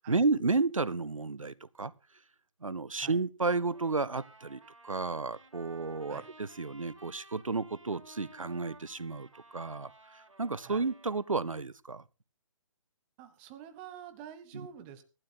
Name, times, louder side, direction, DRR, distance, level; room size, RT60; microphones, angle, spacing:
voice 1, 0.1-1.9 2.6-12.0, right 3 dB, 85° right, 0.5 m, -32 dB
Trumpet, 3.6-11.3, right 2 dB, 70° right, 3.7 m, -56 dB
voice 2, 13.2-15.0, right 9 dB, 20° right, 1.1 m, -48 dB
25.0 x 12.0 x 2.2 m
figure-of-eight pair, 140°, 17 cm